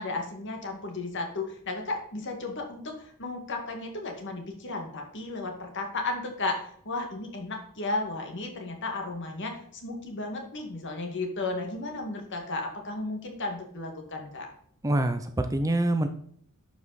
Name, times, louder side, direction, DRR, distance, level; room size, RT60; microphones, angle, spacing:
voice 1, 0.0-14.5, left 2 dB, 55° left, 2 dB, 2.1 m, -34 dB
voice 2, 14.8-16.1, right 1 dB, 15° right, 8 dB, 0.6 m, -25 dB
11.0 x 5.4 x 4.2 m, 0.63 s
head